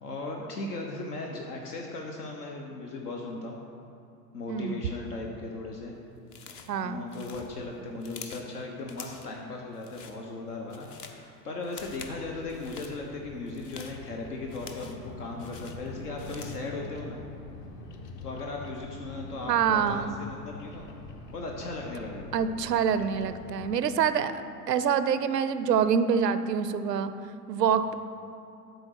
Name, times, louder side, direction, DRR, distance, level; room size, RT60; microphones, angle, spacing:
voice 1, 0.0-3.6 4.3-5.9 6.8-17.2 18.2-20.9 21.3-22.3, left 2 dB, 70° left, 0 dB, 1.0 m, -37 dB
voice 2, 4.5-4.8 6.7-7.1 19.5-20.2 22.3-24.4 24.7-27.1 27.5-27.9, right 7 dB, 80° right, 12 dB, 0.6 m, -26 dB
sound 1, 6.3-6.8 7.1-8.5 8.9-9.4 9.7-10.2 10.5-11.2 11.6-12.2 12.5-13.0 13.5-15.1 15.4-16.7, left 5 dB, 25° left, 0.3 m, -46 dB
Bird vocalization bird call bird song, 11.8-23.8, left 3 dB, 40° left, 0.9 m, -44 dB
7.8 x 4.0 x 6.4 m, 2.7 s
figure-of-eight pair, 90°, 48 cm